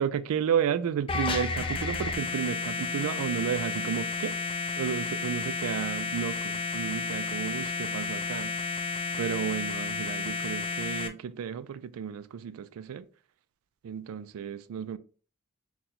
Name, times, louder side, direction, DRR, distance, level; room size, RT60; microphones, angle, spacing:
voice 1, 0.0-4.4 4.8-8.5 9.2-13.1 13.8-15.0, right 8 dB, 85° right, 0.3 m, -32 dB
sound 1, 1.1-11.1, left 4 dB, 25° left, 0.3 m, -32 dB
2.8 x 2.3 x 3.9 m
head